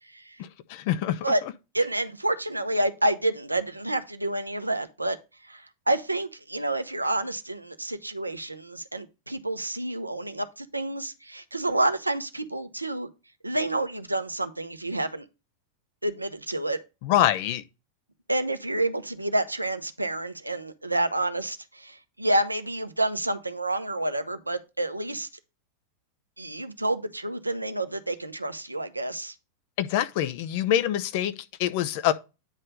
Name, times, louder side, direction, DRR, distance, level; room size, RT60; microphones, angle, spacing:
voice 1, 0.1-0.4 1.2-1.4 1.7-5.2 5.4-13.1 13.4-15.3 16.0-16.8 18.3-25.3 26.4-29.3, right 1 dB, 85° right, 0.6 m, -29 dB
voice 2, 0.7-1.2 17.0-17.6 29.8-31.3 31.6-32.1, left 11 dB, 45° left, 0.6 m, -24 dB
9.1 x 3.3 x 5.1 m
figure-of-eight pair, 90°, 0 cm